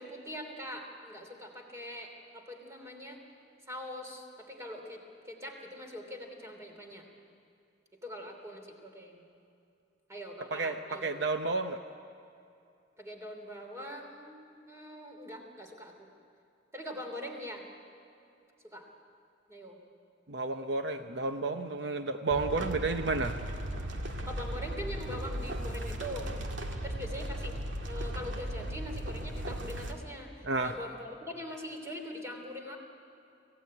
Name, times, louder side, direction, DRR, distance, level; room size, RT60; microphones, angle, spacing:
voice 1, 0.0-3.2 3.7-7.0 8.0-9.2 10.1-11.2 13.0-16.1 16.7-17.6 18.7-18.9 19.5-19.8 24.2-26.3 26.8-27.5 27.9-32.8, equal, 15° right, 2 dB, 3.1 m, -43 dB
voice 2, 10.5-11.8 20.3-23.3 30.4-30.7, right 3 dB, 65° right, 7 dB, 0.8 m, -31 dB
sound 1, 22.3-29.9, right 1 dB, 90° right, 2.1 m, -37 dB
25.0 x 16.5 x 9.7 m, 2.6 s
head